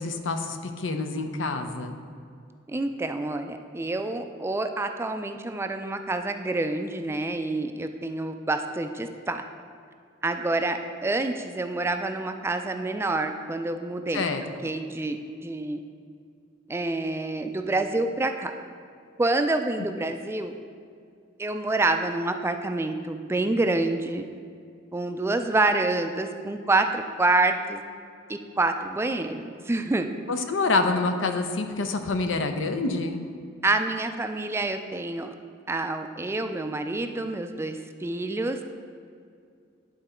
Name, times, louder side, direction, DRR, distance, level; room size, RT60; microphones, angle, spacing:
voice 1, 0.0-2.0 14.1-14.4 30.3-33.2, left 3 dB, 85° left, 7 dB, 0.6 m, -27 dB
voice 2, 2.7-9.4 10.2-14.2 14.6-15.8 16.7-18.5 19.2-20.5 21.4-24.2 24.9-27.8 28.3-30.1 33.6-35.3 35.7-38.6, right 2 dB, 15° right, 7 dB, 0.3 m, -27 dB
10.5 x 3.9 x 4.4 m, 2.3 s
head